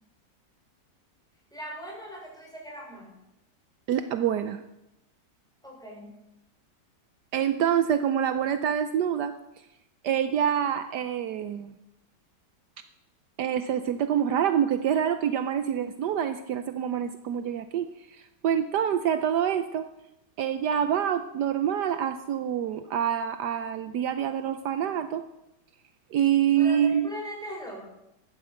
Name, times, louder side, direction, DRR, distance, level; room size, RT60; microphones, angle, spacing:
voice 1, 1.5-3.1 5.6-6.2 26.6-27.9, right 1 dB, ahead, -2 dB, 6.0 m, -40 dB
voice 2, 3.9-4.6 7.3-9.3 10.0-11.7 13.4-19.9 20.4-25.2 26.1-27.1, right 9 dB, 70° right, 10 dB, 1.3 m, -26 dB
14.0 x 11.5 x 7.9 m, 0.88 s
omnidirectional pair, 1.9 m